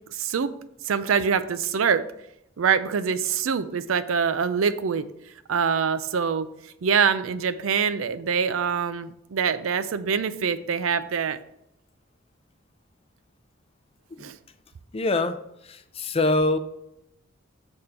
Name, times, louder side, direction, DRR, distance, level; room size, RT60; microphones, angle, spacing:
voice 1, 0.1-0.5 0.8-2.1 2.6-5.1 5.5-6.5 6.8-11.4 14.2-14.4, right 6 dB, 90° right, 13 dB, 0.5 m, -24 dB
voice 2, 14.9-15.4 15.6-16.6, left 2 dB, 30° left, 10 dB, 0.5 m, -24 dB
6.6 x 3.6 x 5.7 m, 0.81 s
head